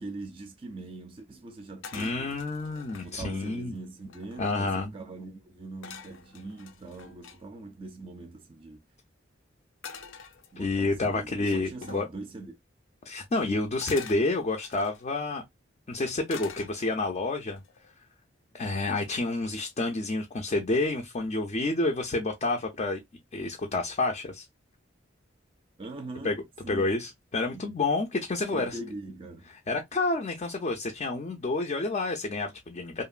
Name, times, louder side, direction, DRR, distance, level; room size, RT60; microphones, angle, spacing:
voice 1, 0.0-2.4 3.0-8.8 10.5-12.6 25.8-26.9 27.5-27.9 28.5-29.5, right 2 dB, 30° right, 0.4 m, -42 dB
sound 1, 1.8-3.1 3.7-3.8 4.0-4.6 5.8-7.4 9.8-10.9 11.8-12.1 13.8-15.0 16.3-17.1 17.6-17.9, left 6 dB, 85° left, 0.5 m, -45 dB
voice 2, 1.9-3.7 4.4-4.9 10.6-12.0 13.1-15.4 15.9-17.6 18.5-23.0 23.3-24.5 26.2-26.3 26.7-28.8 29.7-33.0, left 2 dB, 35° left, 0.4 m, -29 dB
2.8 x 2.5 x 2.3 m
head